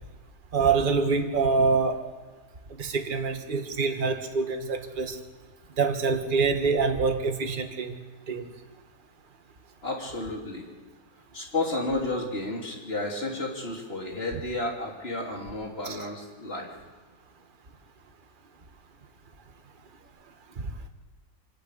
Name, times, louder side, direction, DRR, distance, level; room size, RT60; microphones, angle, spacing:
voice 1, 0.5-2.0 2.8-5.2 5.8-8.0 8.3-8.5 15.8-16.0 20.6-20.7, right 4 dB, 30° right, 5 dB, 1.5 m, -25 dB
voice 2, 9.8-10.7 11.3-16.7, left 2 dB, 30° left, 0 dB, 3.3 m, -32 dB
24.5 x 17.5 x 6.8 m, 1.4 s
omnidirectional pair, 2.0 m